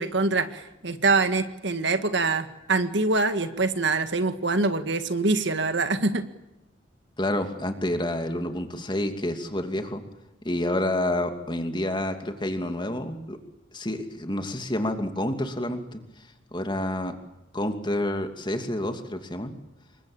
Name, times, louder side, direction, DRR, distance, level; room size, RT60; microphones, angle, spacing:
voice 1, 0.0-6.2, right 3 dB, 55° right, 9 dB, 1.9 m, -24 dB
voice 2, 7.2-10.0 10.4-13.4 13.7-17.1 17.5-19.5, left 1 dB, 20° left, 6 dB, 2.8 m, -29 dB
28.0 x 23.5 x 8.8 m, 0.90 s
head